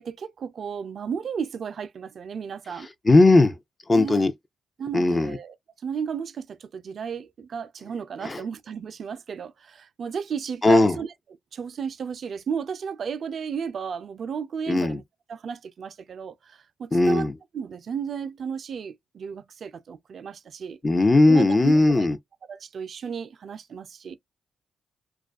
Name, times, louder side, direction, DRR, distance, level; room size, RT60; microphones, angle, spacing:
voice 1, 0.0-2.9 3.9-4.2 4.8-5.5 5.8-11.1 11.5-15.0 15.3-17.3 17.5-20.8 21.3-22.1 22.5-24.2, right 6 dB, 60° right, 0.4 m, -33 dB
voice 2, 3.0-3.5 3.9-4.3 4.9-5.4 8.2-8.4 10.6-11.0 14.7-15.0 16.9-17.3 20.8-22.2, left 2 dB, 30° left, 0.6 m, -18 dB
2.4 x 2.2 x 2.3 m
supercardioid pair, 55°, 0 cm